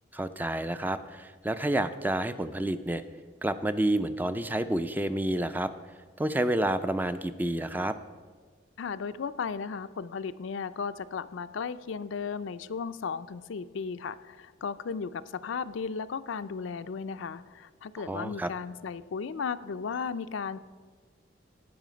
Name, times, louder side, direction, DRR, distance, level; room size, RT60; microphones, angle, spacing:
voice 1, 0.1-3.0 3.4-5.7 6.2-8.0 18.1-18.5, right 1 dB, 10° right, 11 dB, 0.3 m, -29 dB
voice 2, 8.8-20.6, left 5 dB, 75° left, 13 dB, 0.4 m, -35 dB
16.5 x 5.7 x 5.1 m, 1.5 s
head